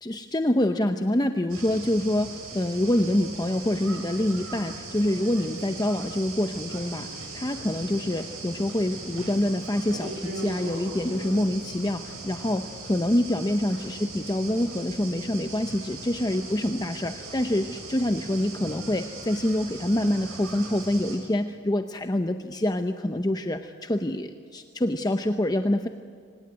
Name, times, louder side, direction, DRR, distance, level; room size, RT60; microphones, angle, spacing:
voice 1, 0.0-25.9, left 1 dB, 20° left, 7 dB, 0.7 m, -26 dB
sound 1, 1.5-21.2, right 2 dB, 80° right, 6.4 m, -39 dB
25.5 x 18.0 x 9.6 m, 2.2 s
head